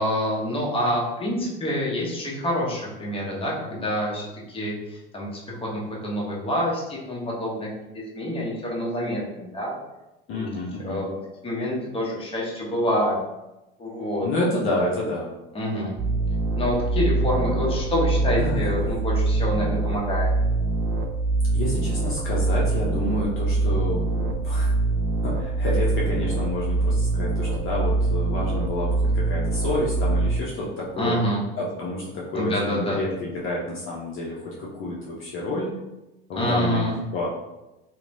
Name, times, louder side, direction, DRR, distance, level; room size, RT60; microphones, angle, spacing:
voice 1, 0.0-7.7 7.9-9.7 10.3-10.5 10.8-11.2 11.4-13.2 13.8-14.3 15.5-15.9 16.6-20.3 31.0-31.4 32.3-33.0 36.3-37.0, equal, 20° left, -4 dB, 0.9 m, -27 dB
voice 2, 10.3-11.0 14.2-15.3 18.3-18.7 21.5-24.7 25.2-31.2 31.6-35.7 36.3-37.3, left 1 dB, 45° left, -5 dB, 0.7 m, -29 dB
sound 1, 16.0-30.4, right 3 dB, 40° right, 0.4 m, -24 dB
2.8 x 2.2 x 2.6 m, 0.96 s
hypercardioid pair, 90°, 30 cm